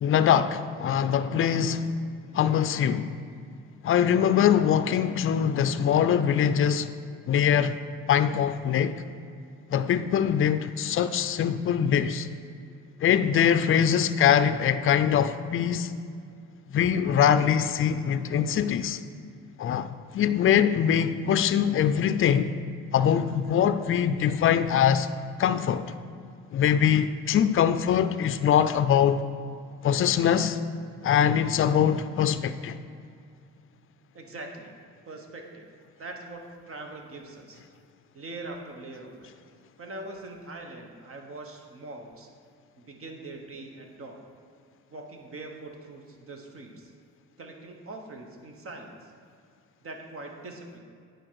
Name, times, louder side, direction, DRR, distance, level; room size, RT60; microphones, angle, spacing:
voice 1, 0.0-1.9 2.3-3.1 3.8-6.9 7.3-7.8 8.1-9.0 9.7-12.3 13.0-15.9 16.7-19.0 19.6-22.5 22.9-25.1 25.4-25.9 26.5-29.2 29.8-30.6 31.0-32.8, left 8 dB, 45° left, 0.4 m, -23 dB
voice 2, 34.1-34.7 35.0-35.7 36.0-37.6 38.1-39.3 39.8-42.3 42.8-44.2 44.9-46.9 47.4-49.1 49.8-50.8, right 2 dB, 45° right, 1.2 m, -42 dB
9.8 x 4.6 x 4.7 m
cardioid pair, 90°, 30 cm